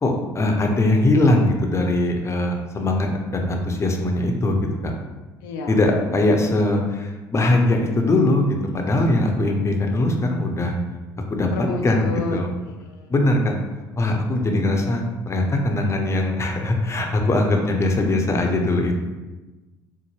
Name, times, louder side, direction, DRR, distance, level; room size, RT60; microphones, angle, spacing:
voice 1, 0.0-4.6 4.8-4.9 5.7-10.7 11.3-11.5 11.8-12.5 13.1-13.6 14.0-19.0, left 2 dB, 25° left, 2 dB, 0.6 m, -21 dB
voice 2, 5.4-5.8 11.5-12.4 12.7-13.1, left 3 dB, 80° left, 2 dB, 0.4 m, -30 dB
4.1 x 2.1 x 3.1 m, 1.2 s
hypercardioid pair, 60°, 10 cm